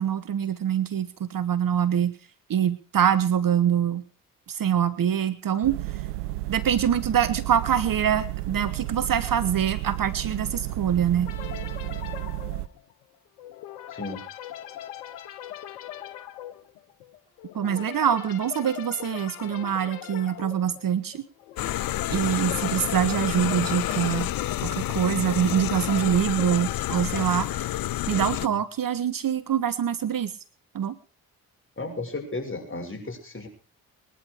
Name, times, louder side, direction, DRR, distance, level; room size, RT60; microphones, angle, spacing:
voice 1, 0.0-2.1 2.5-4.0 4.5-5.8 6.5-11.3 17.5-21.2 22.1-24.3 24.6-27.5 28.1-30.3 30.7-30.9, right 9 dB, 50° right, 14 dB, 1.1 m, -24 dB
sound 1, 5.6-12.7, right 16 dB, 90° right, 0.7 m, -32 dB
sound 2, 11.3-28.4, left 11 dB, 85° left, 1.2 m, -41 dB
voice 2, 13.9-14.2 28.4-28.6 31.8-33.5, left 2 dB, 25° left, 3 dB, 6.5 m, -34 dB
sound 3, 21.6-28.5, left 14 dB, 50° left, 0.7 m, -29 dB
20.5 x 11.0 x 4.9 m, 0.37 s
hypercardioid pair, 40°, 44 cm